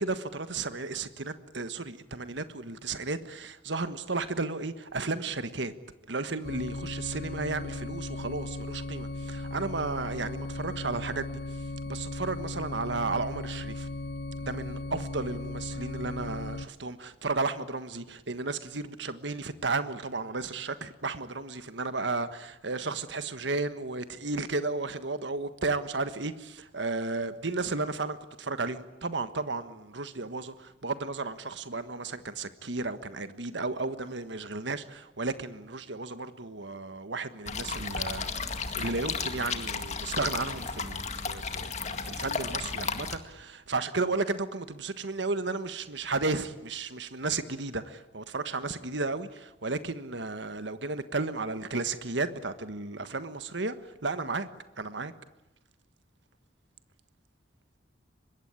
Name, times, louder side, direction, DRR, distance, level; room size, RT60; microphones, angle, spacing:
voice 1, 0.0-5.7 6.1-11.4 11.9-13.9 14.4-54.5 54.8-55.1, right 3 dB, 70° right, 1.5 m, -33 dB
sound 1, 6.4-16.7, left 2 dB, 65° left, 1.0 m, -37 dB
sound 2, 37.5-43.2, left 5 dB, 35° left, 2.0 m, -34 dB
25.0 x 22.0 x 9.7 m
head